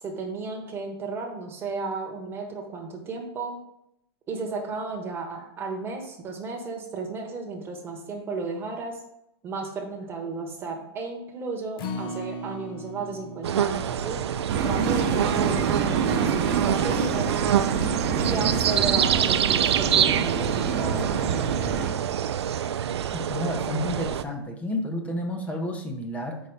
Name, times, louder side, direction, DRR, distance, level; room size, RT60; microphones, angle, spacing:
voice 1, 0.0-3.6 4.3-9.0 9.4-14.2 14.6-17.4 18.1-21.6, right 4 dB, 15° right, 1 dB, 1.1 m, -33 dB
Acoustic guitar, 11.8-18.1 18.5-18.6 19.0-19.1, left 1 dB, 55° left, 0.9 m, -41 dB
sound 1, 13.4-24.2, right 9 dB, 85° right, 0.4 m, -26 dB
sound 2, 14.5-21.9, right 6 dB, 45° right, 0.9 m, -27 dB
voice 2, 23.1-26.4, left 1 dB, 10° left, 3 dB, 0.7 m, -30 dB
4.7 x 4.1 x 5.4 m, 0.80 s
hypercardioid pair, 140°, 14 cm